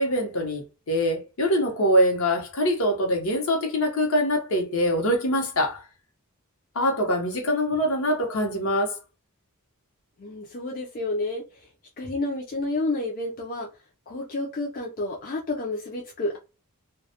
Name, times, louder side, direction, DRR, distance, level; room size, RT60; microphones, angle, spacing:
voice 1, 0.0-5.8 6.7-9.0, equal, 65° left, 0.8 m, -24 dB
voice 2, 10.2-11.4 12.0-13.7 14.1-16.4, left 2 dB, 40° left, 0.4 m, -30 dB
2.2 x 2.1 x 2.8 m
head